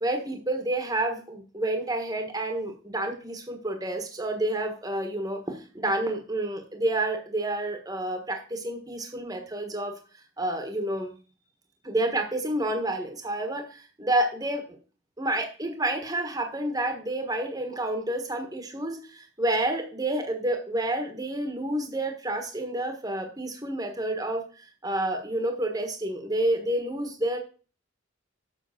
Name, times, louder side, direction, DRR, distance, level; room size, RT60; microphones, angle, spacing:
voice 1, 0.0-10.0 10.4-11.1 11.8-14.8 15.2-27.4, right 1 dB, 15° right, 4 dB, 1.3 m, -29 dB
7.4 x 5.7 x 5.8 m, 0.38 s
head